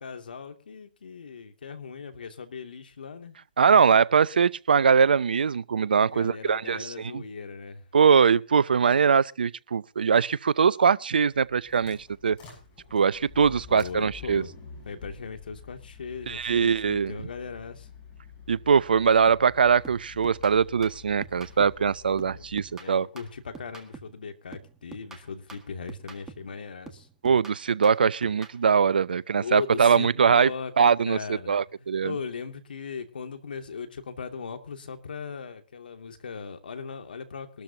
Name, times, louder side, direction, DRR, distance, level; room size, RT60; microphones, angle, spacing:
voice 1, 0.0-3.4 6.0-7.9 13.7-14.5 14.8-17.9 22.2-22.5 22.8-27.1 29.4-37.6, left 5 dB, 70° left, 2.6 m, -38 dB
voice 2, 3.6-7.2 7.9-12.0 12.2-12.4 12.9-14.4 16.3-17.2 18.5-23.1 27.2-30.5 30.8-32.1, right 6 dB, 75° right, 0.6 m, -22 dB
sound 1, 11.3-22.8, left 6 dB, 30° left, 7.7 m, -48 dB
sound 2, 19.8-21.9 22.2-24.2 24.5-26.6 26.9-28.6, right 4 dB, 10° right, 1.8 m, -47 dB
22.5 x 13.0 x 2.9 m
hypercardioid pair, 135°, 5 cm